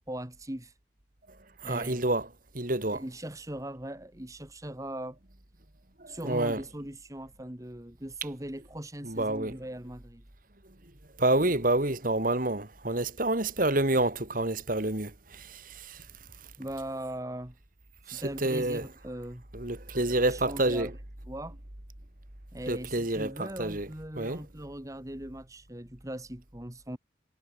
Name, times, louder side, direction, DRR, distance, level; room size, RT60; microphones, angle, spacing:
voice 1, 0.1-0.7 1.6-2.0 2.9-5.2 6.1-10.2 16.6-17.6 18.1-19.4 20.3-20.9 21.3-21.6 22.5-27.0, right 1 dB, 15° right, 2.0 m, -39 dB
voice 2, 1.6-2.3 2.5-3.0 6.0-6.6 9.0-9.6 11.2-16.0 18.1-18.9 19.5-20.9 22.7-23.9 24.1-24.4, right 2 dB, 45° right, 2.7 m, -28 dB
head